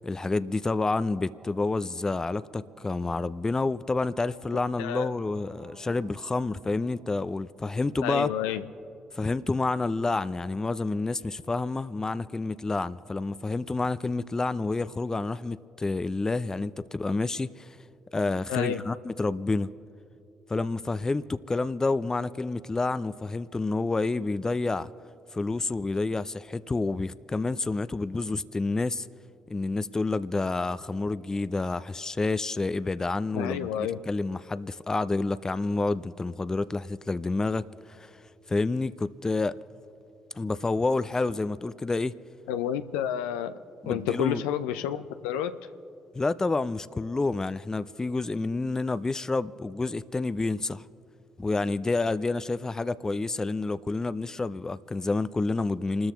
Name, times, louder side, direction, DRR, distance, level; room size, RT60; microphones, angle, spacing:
voice 1, 0.0-8.3 9.1-17.8 18.1-19.7 20.5-24.9 25.3-29.1 29.5-33.7 34.1-38.1 38.5-39.6 40.3-42.2 43.8-44.4 46.1-50.8 51.4-56.1, left 3 dB, 25° left, 0.5 m, -29 dB
sound 1, 1.2-8.9, right 4 dB, 90° right, 2.1 m, -56 dB
voice 2, 4.8-5.1 8.0-8.6 18.5-18.8 33.3-34.0 42.5-45.7, left 10 dB, 80° left, 0.6 m, -30 dB
29.0 x 13.5 x 3.1 m
hypercardioid pair, 45°, 2 cm